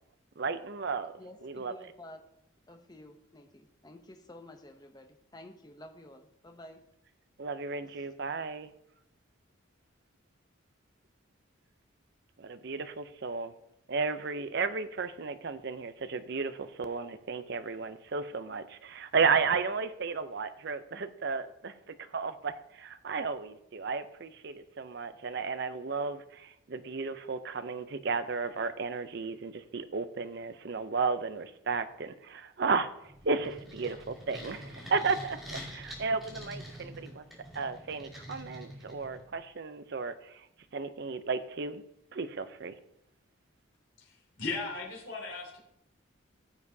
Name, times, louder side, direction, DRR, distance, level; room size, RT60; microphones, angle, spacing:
voice 1, 0.4-1.1 1.4-1.7 7.4-8.7 12.4-13.5 13.9-21.7 22.1-37.2 37.6-40.5 40.7-41.8 42.1-42.7, right 4 dB, 55° right, 11 dB, 0.6 m, -33 dB
voice 2, 1.2-2.2 2.7-6.8 7.9-8.1, left 1 dB, 20° left, 6 dB, 0.7 m, -51 dB
sound 1, 33.0-39.4, equal, ahead, 2.5 m, -46 dB
voice 3, 44.0-45.6, left 3 dB, 70° left, -2 dB, 3.0 m, -37 dB
14.5 x 7.3 x 2.7 m, 0.80 s
head